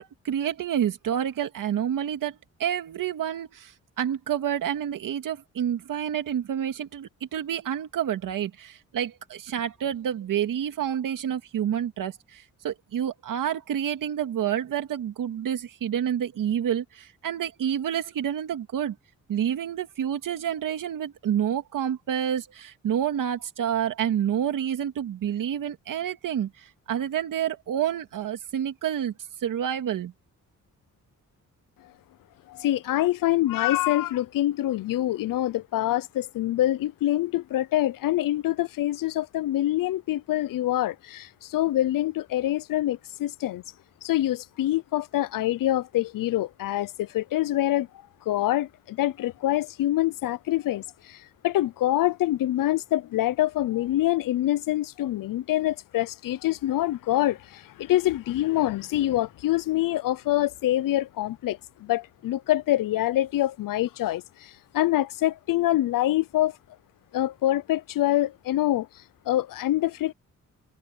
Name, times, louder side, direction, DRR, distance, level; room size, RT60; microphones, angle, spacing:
voice 1, 0.0-19.0 19.3-29.1 29.4-30.1, right 9 dB, 80° right, 2.2 m, -28 dB
voice 2, 32.5-43.6 44.0-47.9 48.3-66.6 67.1-68.9 69.3-70.1, left 14 dB, 90° left, 0.7 m, -25 dB
wide cardioid pair, 180°, 32 cm